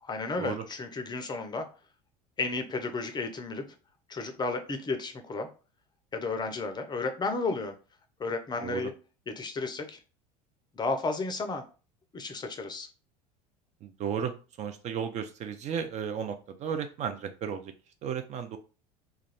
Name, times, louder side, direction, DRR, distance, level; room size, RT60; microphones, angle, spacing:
voice 1, 0.0-1.6 2.4-3.6 4.1-5.5 6.1-7.8 8.2-8.9 9.3-10.0 10.7-11.6 12.1-12.9, left 3 dB, 20° left, 6 dB, 0.5 m, -33 dB
voice 2, 13.8-17.7 18.0-18.6, right 7 dB, 35° right, 7 dB, 0.4 m, -34 dB
2.3 x 2.2 x 3.2 m, 0.35 s
figure-of-eight pair, 70°, 20 cm